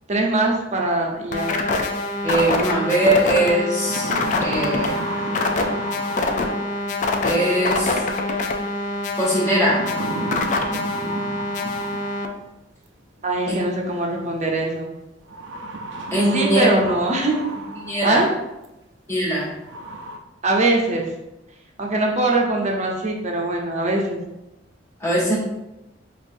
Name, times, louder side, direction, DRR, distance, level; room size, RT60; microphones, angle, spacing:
voice 1, 0.1-1.5 13.2-14.9 16.3-17.4 18.0-18.3 20.4-21.1 21.8-24.2, right 2 dB, 40° right, 0 dB, 0.7 m, -22 dB
sound 1, 1.3-12.3, left 2 dB, 45° left, 0.4 m, -25 dB
voice 2, 2.2-4.1 4.4-5.0 7.2-8.0 9.2-9.8 13.5-13.6 16.1-16.7 17.8-18.2 19.1-19.5 25.0-25.4, right 1 dB, 15° left, -8 dB, 1.5 m, -21 dB
sound 2, 3.6-7.0 8.4-8.8 9.6-12.4 13.7-13.8 15.3-18.2 18.6-18.7 19.3-19.4 19.6-20.2, right 2 dB, 85° right, 0.5 m, -32 dB
5.1 x 2.5 x 2.6 m, 0.94 s
head